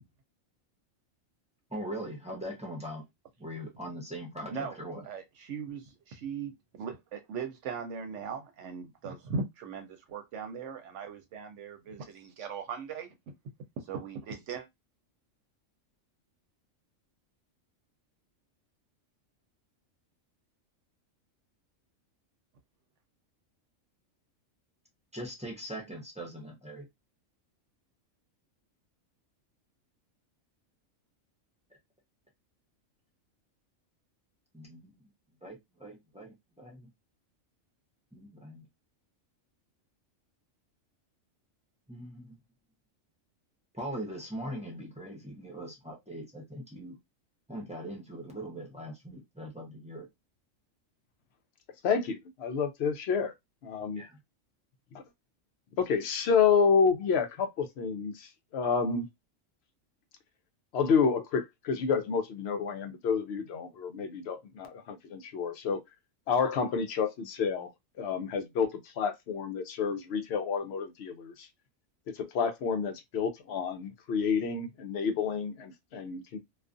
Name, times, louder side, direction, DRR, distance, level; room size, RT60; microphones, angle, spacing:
voice 1, 1.7-3.0 3.4-5.0 25.1-26.9 34.5-35.0 35.4-36.9 38.1-38.7 41.9-42.4 43.7-47.0 47.5-50.1 53.9-54.2, equal, 5° right, 0.6 m, -41 dB
voice 2, 5.0-13.1 13.9-14.7, right 5 dB, 70° right, 0.9 m, -39 dB
voice 3, 51.8-53.3 53.6-54.0 55.8-59.1 60.7-65.8 66.3-67.7 68.0-71.5 72.1-76.4, left 6 dB, 65° left, 0.7 m, -29 dB
2.4 x 2.3 x 2.5 m
omnidirectional pair, 1.4 m